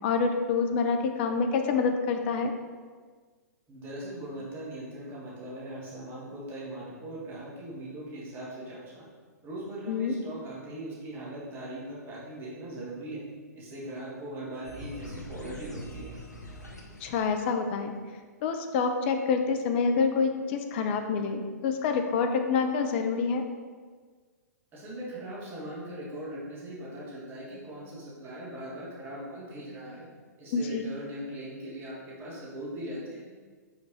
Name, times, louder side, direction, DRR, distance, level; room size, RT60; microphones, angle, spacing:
voice 1, 0.0-2.5 9.9-10.2 17.0-17.9 18.4-23.4 30.5-30.8, left 5 dB, 40° left, 5 dB, 0.6 m, -27 dB
voice 2, 3.7-9.0 9.4-13.2 13.6-16.1 24.7-30.1 30.4-33.3, right 1 dB, 25° right, -5 dB, 1.8 m, -40 dB
sound 1, 14.6-17.9, equal, 80° left, 1.0 m, -43 dB
5.0 x 4.6 x 4.2 m, 1.5 s
figure-of-eight pair, 115°, 9 cm